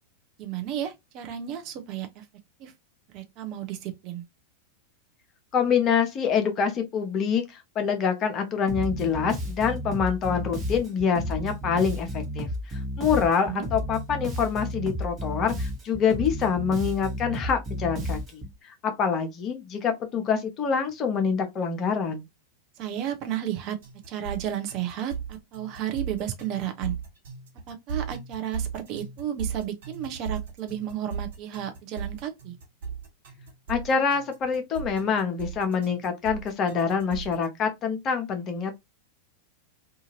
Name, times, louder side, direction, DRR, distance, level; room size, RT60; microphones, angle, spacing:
voice 1, 0.4-2.2 2.6-2.7 3.1-4.2 13.1-13.2 13.5-13.7 22.8-23.8 24.1-27.0 27.7-32.5, right 11 dB, 40° right, 0.6 m, -33 dB
voice 2, 5.5-22.2 33.7-38.8, left 6 dB, 30° left, 0.7 m, -26 dB
Bass guitar, 8.7-18.6, equal, 20° right, 1.1 m, -32 dB
sound 1, 23.8-37.4, right 6 dB, 60° right, 1.1 m, -37 dB
2.7 x 2.4 x 2.8 m
figure-of-eight pair, 90°, 0 cm